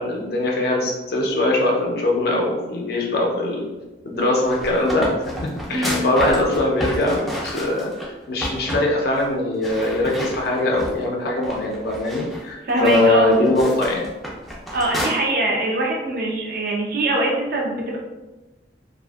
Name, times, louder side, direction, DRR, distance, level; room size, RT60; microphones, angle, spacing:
voice 1, 0.0-3.7 4.0-5.1 5.4-7.9 8.3-14.0, left 1 dB, 60° left, -1 dB, 0.5 m, -21 dB
sound 1, 4.3-8.1 8.4-8.9 9.1-9.3 9.6-11.0 11.4-15.1, equal, ahead, 0.4 m, -31 dB
voice 2, 5.7-6.0 12.6-13.4 14.7-18.0, right 1 dB, 55° right, -1 dB, 0.5 m, -23 dB
2.5 x 2.3 x 2.3 m, 1.1 s
head